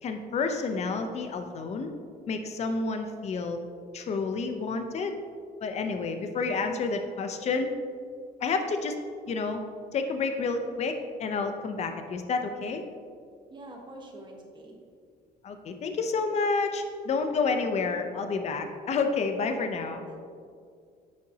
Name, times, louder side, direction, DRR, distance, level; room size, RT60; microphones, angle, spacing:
voice 1, 0.0-1.9 2.3-3.6 3.9-5.2 5.6-7.7 8.4-9.0 9.3-9.6 9.9-12.8 15.4-20.0, left 4 dB, 40° left, 6 dB, 0.6 m, -29 dB
voice 2, 13.5-14.8 17.5-17.7 19.9-20.1, right 1 dB, 25° right, 0 dB, 1.2 m, -46 dB
9.4 x 5.1 x 2.8 m, 2.2 s
cardioid pair, 110°, 17 cm